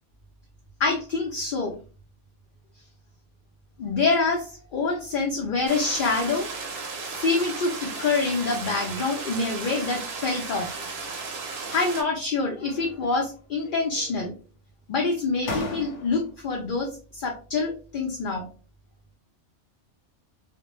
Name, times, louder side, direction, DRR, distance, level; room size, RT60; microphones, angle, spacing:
voice 1, 0.8-1.7 3.8-6.5 7.1-10.8 11.7-14.3 14.9-18.5, left 3 dB, 60° left, 1 dB, 0.6 m, -26 dB
sound 1, 5.7-12.0, right 4 dB, 60° right, 0.7 m, -35 dB
sound 2, 11.6-12.2 12.6-13.3 13.6-14.4 15.0-15.1 15.4-16.4, left 2 dB, 80° left, 1.0 m, -38 dB
2.1 x 2.1 x 2.9 m, 0.35 s
omnidirectional pair, 1.2 m